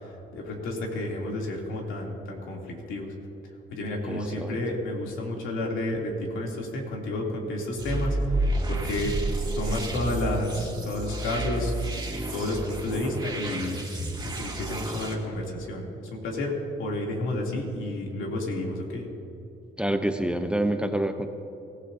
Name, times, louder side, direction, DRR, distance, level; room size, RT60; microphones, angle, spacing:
voice 1, 0.0-3.1 3.7-9.2 9.6-12.0 12.3-13.8 14.2-16.5 16.8-19.1, left 1 dB, 90° left, -1 dB, 3.1 m, -31 dB
voice 2, 4.0-4.6 19.8-21.3, right 1 dB, 5° right, 6 dB, 0.9 m, -27 dB
sound 1, 7.8-15.2, right 2 dB, 20° right, 2.9 m, -30 dB
24.5 x 15.5 x 2.8 m, 2.8 s
cardioid pair, 90°, 20 cm